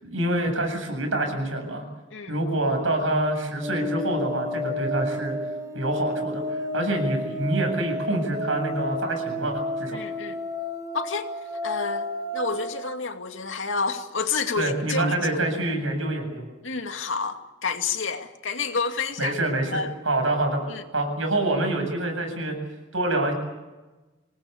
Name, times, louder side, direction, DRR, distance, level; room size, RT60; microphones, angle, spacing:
voice 1, 0.0-1.8 2.3-5.4 5.7-6.4 6.7-10.0 14.6-16.4 19.2-20.6 20.9-22.6 22.9-23.3, right 1 dB, 85° right, 4 dB, 7.9 m, -26 dB
sound 1, 3.6-12.7, left 1 dB, 20° right, 4.6 m, -31 dB
voice 2, 9.9-10.4 10.9-11.3 11.6-15.3 16.6-19.3 19.7-19.9 20.7-20.8, left 4 dB, 75° left, 5 dB, 2.4 m, -29 dB
26.0 x 19.5 x 8.4 m, 1.1 s
head